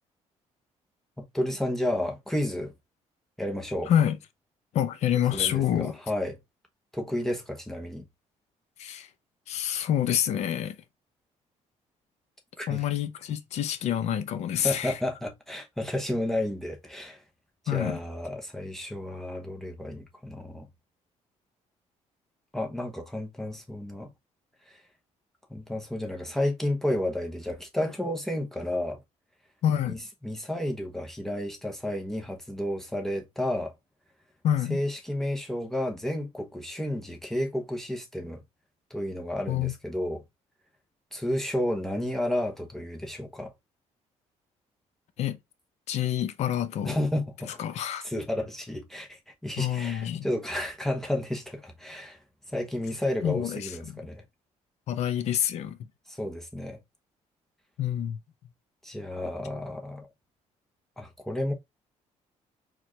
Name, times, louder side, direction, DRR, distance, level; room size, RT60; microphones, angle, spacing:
voice 1, 1.2-2.7 3.4-3.9 5.3-6.4 6.9-8.0 12.6-12.8 14.6-17.2 17.6-20.7 22.5-24.1 24.7-24.8 25.5-29.0 29.8-33.7 34.7-38.4 38.9-40.2 41.1-43.5 46.8-47.5 48.0-52.2 52.5-54.2 56.1-56.8 58.8-60.1 61.0-61.5, left 1 dB, 5° left, 0.9 m, -31 dB
voice 2, 4.7-5.9 8.8-9.1 9.5-10.7 12.7-14.9 17.7-18.0 29.6-30.0 34.4-34.8 39.5-39.7 45.2-45.4 45.9-47.0 47.6-48.0 49.6-50.3 53.2-53.9 54.9-55.8 57.8-58.2, left 10 dB, 65° left, 0.6 m, -27 dB
4.4 x 2.4 x 3.0 m
cardioid pair, 140°, 12 cm